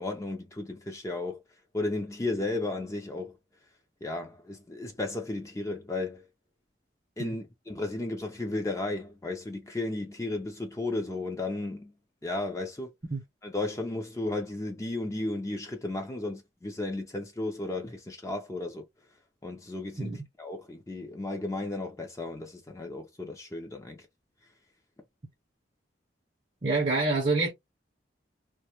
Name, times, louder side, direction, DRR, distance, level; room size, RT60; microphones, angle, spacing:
voice 1, 0.0-1.4 1.7-3.4 4.0-6.2 7.2-11.9 12.2-12.9 13.4-18.8 19.4-24.0, left 2 dB, 15° left, 0.4 m, -34 dB
voice 2, 26.6-27.5, right 3 dB, 35° right, 0.5 m, -26 dB
2.2 x 2.1 x 2.9 m
head